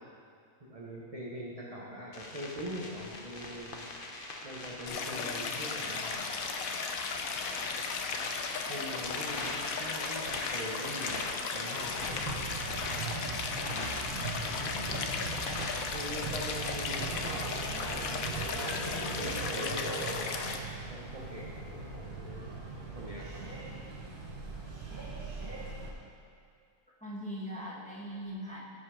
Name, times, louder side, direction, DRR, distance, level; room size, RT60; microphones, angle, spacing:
voice 1, 0.6-3.7 4.4-6.3 8.7-11.3 11.5-11.9 15.9-18.1 19.2-22.5 22.9-23.4, equal, 25° right, -5 dB, 1.0 m, -42 dB
sound 1, 2.1-16.1, left 2 dB, 40° left, 1.0 m, -42 dB
Stream, 4.9-20.6, left 5 dB, 65° left, 1.1 m, -36 dB
sound 2, 12.0-25.9, right 3 dB, 70° right, 2.0 m, -39 dB
voice 2, 27.0-28.7, equal, 5° left, -6 dB, 1.6 m, -41 dB
15.0 x 5.6 x 5.0 m, 2.4 s
omnidirectional pair, 1.7 m